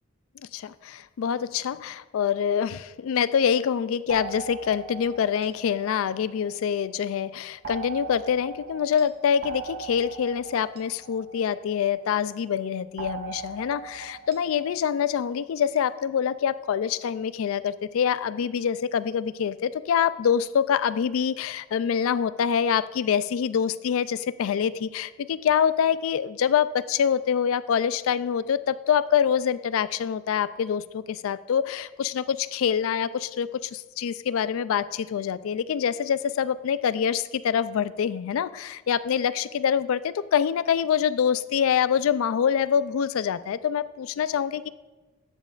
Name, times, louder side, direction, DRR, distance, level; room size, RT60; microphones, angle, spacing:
voice 1, 0.5-44.7, left 8 dB, 70° left, 16 dB, 0.3 m, -25 dB
sound 1, 4.1-6.9 7.6-12.2 13.0-14.8, right 5 dB, 45° right, 0.9 m, -40 dB
13.0 x 7.3 x 2.4 m, 1.2 s
head